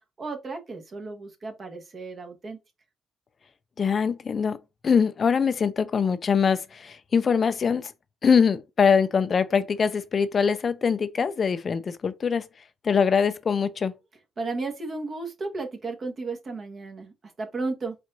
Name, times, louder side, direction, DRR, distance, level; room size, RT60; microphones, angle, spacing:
voice 1, 0.2-2.6 14.4-18.0, right 3 dB, 40° right, 1.5 m, -34 dB
voice 2, 3.8-4.6 4.8-7.9 8.2-12.5 12.8-13.9, left 6 dB, 45° left, 0.5 m, -23 dB
4.6 x 4.2 x 2.6 m
cardioid pair, 90°, 0 cm